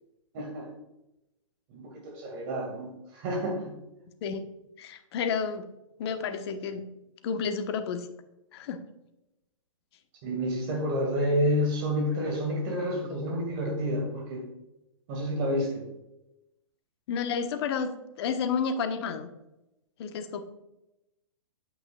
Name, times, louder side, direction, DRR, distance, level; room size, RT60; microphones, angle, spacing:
voice 1, 0.3-0.7 1.7-3.7 10.2-14.5 15.1-15.9, equal, 40° right, 1 dB, 2.0 m, -29 dB
voice 2, 4.8-5.6 6.0-6.8 7.2-8.1 8.5-8.8 17.1-17.9 18.2-19.3 20.0-20.4, left 6 dB, 50° left, 8 dB, 1.1 m, -30 dB
8.8 x 8.7 x 2.3 m, 0.92 s
figure-of-eight pair, 115°, 18 cm